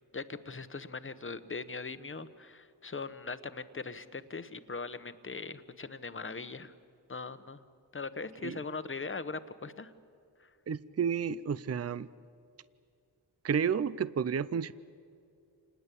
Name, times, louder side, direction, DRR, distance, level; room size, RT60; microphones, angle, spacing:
voice 1, 0.1-6.7 7.1-7.6 7.9-9.9 10.4-10.5, left 4 dB, 30° left, 12 dB, 1.1 m, -40 dB
voice 2, 10.7-12.1 13.4-14.7, right 7 dB, 35° right, 17 dB, 0.5 m, -31 dB
28.0 x 20.0 x 8.4 m, 2.4 s
wide cardioid pair, 75°, 42 cm